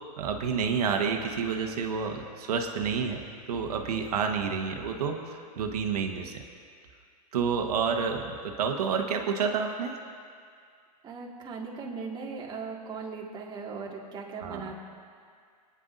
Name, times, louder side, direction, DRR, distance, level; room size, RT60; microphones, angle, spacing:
voice 1, 0.2-3.2 3.5-6.4 7.3-9.9 14.4-14.7, right 6 dB, 75° right, 4 dB, 1.3 m, -29 dB
voice 2, 11.0-14.8, right 4 dB, 25° right, -2 dB, 1.9 m, -38 dB
26.0 x 9.8 x 2.6 m, 2.2 s
hypercardioid pair, 125°, 20 cm